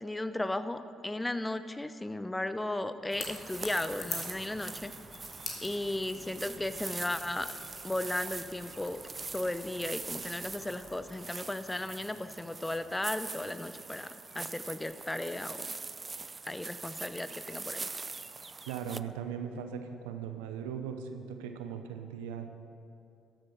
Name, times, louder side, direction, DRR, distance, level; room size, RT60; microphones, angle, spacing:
voice 1, 0.0-4.9 5.6-7.5 7.8-9.0 9.3-15.7 16.5-17.9, left 1 dB, 15° left, 12 dB, 0.6 m, -35 dB
Crackle / Crack, 3.1-11.2, left 4 dB, 55° left, 2.2 m, -46 dB
sound 1, 3.1-19.0, right 4 dB, 30° right, 0.3 m, -43 dB
voice 2, 18.7-22.5, right 7 dB, 80° right, 7 dB, 0.7 m, -39 dB
13.0 x 7.7 x 6.0 m, 2.6 s
hypercardioid pair, 50°, 0 cm